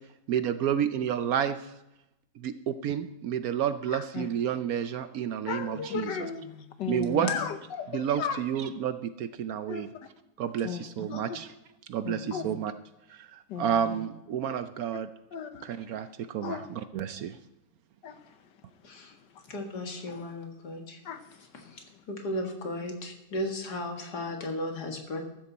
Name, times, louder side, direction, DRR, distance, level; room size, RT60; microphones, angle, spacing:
voice 1, 0.3-1.7 2.4-6.1 6.9-7.3 7.9-9.9 10.4-11.5 11.9-12.7 13.1-15.1 15.6-17.4, right 9 dB, 70° right, 11 dB, 1.0 m, -30 dB
voice 2, 3.9-4.3 5.5-6.4 6.8-8.4 9.7-9.9 10.6-11.4 12.0-12.5 13.5-14.0 15.3-15.8 16.4-16.9 18.0-18.5 19.2-19.5 20.1-20.2 21.0-21.4 21.9-22.0, left 7 dB, 80° left, 9 dB, 1.6 m, -36 dB
voice 3, 5.9-6.5 18.8-19.1 19.5-21.0 21.6-25.2, left 1 dB, 65° left, 3 dB, 2.4 m, -36 dB
14.0 x 12.5 x 4.2 m, 0.89 s
omnidirectional pair, 1.9 m